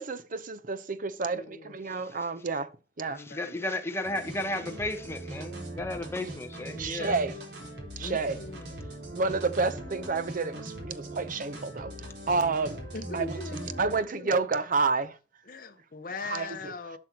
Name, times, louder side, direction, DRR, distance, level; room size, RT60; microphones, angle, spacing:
voice 1, 0.0-2.7 3.0-3.2 6.7-7.4 8.0-8.4 9.1-12.8 13.1-15.2 16.2-16.7, right 4 dB, 50° right, 0.7 m, -30 dB
voice 2, 1.3-1.8 3.1-3.7 8.0-8.7 12.9-14.3 15.5-17.0, left 3 dB, 50° left, 1.0 m, -41 dB
voice 3, 3.2-7.2, left 1 dB, 15° left, 1.1 m, -34 dB
sound 1, 4.0-14.0, right 1 dB, 75° right, 3.9 m, -41 dB
sound 2, 5.9-6.1 6.4-6.9 7.3-7.4 7.6-8.6 9.2-9.4 9.7-9.8 10.0-11.7 12.0-13.4, equal, 30° left, 1.7 m, -55 dB
11.5 x 6.2 x 2.9 m
head